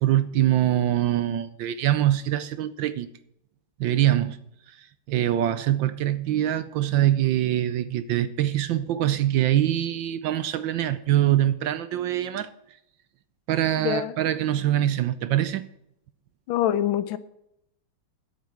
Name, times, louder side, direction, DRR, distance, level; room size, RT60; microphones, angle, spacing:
voice 1, 0.0-3.1 3.8-4.4 4.7-12.5 13.5-15.6, right 12 dB, 70° right, 14 dB, 1.2 m, -24 dB
voice 2, 13.8-14.1 16.5-17.2, left 11 dB, 75° left, 14 dB, 1.4 m, -25 dB
10.5 x 8.4 x 7.6 m, 0.79 s
omnidirectional pair, 2.4 m